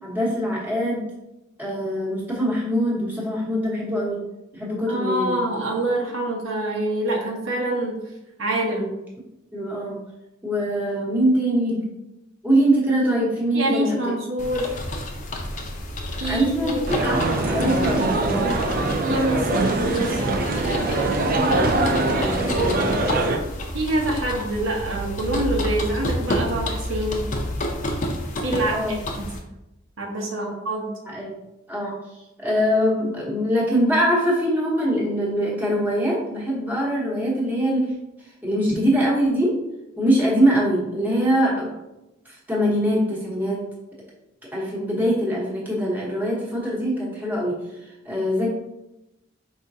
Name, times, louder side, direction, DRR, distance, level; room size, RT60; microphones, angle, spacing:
voice 1, 0.0-1.1 1.6-4.2 4.5-5.4 9.5-10.0 10.4-11.8 12.4-14.0 16.2-18.6 21.8-23.0 28.7-29.0 30.4-30.5 31.0-31.3 31.7-32.0 32.4-37.9 38.4-39.6 40.0-41.7 42.2-43.6 44.5-47.5 48.0-48.5, equal, 10° right, -5 dB, 1.0 m, -23 dB
voice 2, 4.9-8.0 8.4-8.9 13.5-14.8 16.2-16.8 19.0-20.2 23.7-27.2 28.4-28.8 30.0-30.9, right 1 dB, 80° right, -1 dB, 1.0 m, -25 dB
sound 1, 14.4-29.4, equal, 40° left, 0.6 m, -30 dB
sound 2, 16.9-23.4, right 2 dB, 45° right, 0.5 m, -22 dB
4.9 x 3.6 x 2.7 m, 0.94 s
head